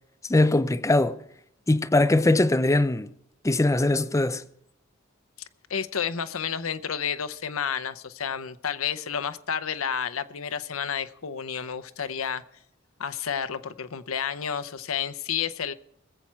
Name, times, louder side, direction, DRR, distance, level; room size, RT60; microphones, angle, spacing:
voice 1, 0.3-1.2 1.7-3.1 3.4-4.4, left 2 dB, 15° left, 0.5 m, -21 dB
voice 2, 5.4-12.4 13.0-15.7, left 7 dB, 85° left, 0.7 m, -31 dB
21.0 x 7.4 x 4.5 m
head